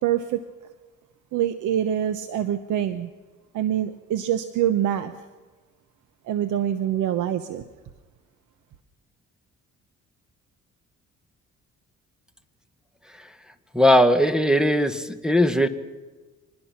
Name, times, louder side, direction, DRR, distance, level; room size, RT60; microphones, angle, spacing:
voice 1, 0.0-0.4 1.3-3.1 3.5-5.1 6.3-7.7, right 10 dB, 80° right, 11 dB, 1.0 m, -25 dB
voice 2, 13.7-15.7, equal, ahead, 10 dB, 1.5 m, -19 dB
25.5 x 20.0 x 5.9 m, 1.3 s
cardioid pair, 90°, 30 cm